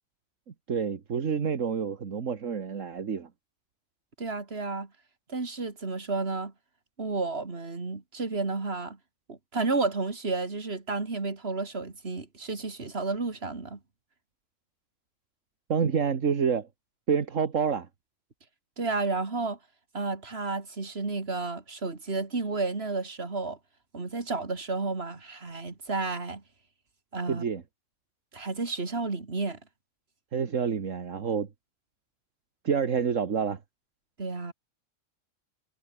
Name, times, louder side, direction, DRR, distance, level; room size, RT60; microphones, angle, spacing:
voice 1, 0.7-3.3 15.7-16.7 17.1-17.9 27.3-27.6 30.3-31.5 32.6-33.6, right 6 dB, 75° right, 1.9 m, -28 dB
voice 2, 4.2-4.9 5.3-6.5 7.0-9.0 9.3-13.8 18.8-19.6 19.9-23.6 23.9-26.4 27.1-27.4 28.3-29.6 34.2-34.5, right 3 dB, 50° right, 3.0 m, -31 dB
omnidirectional pair, 1.3 m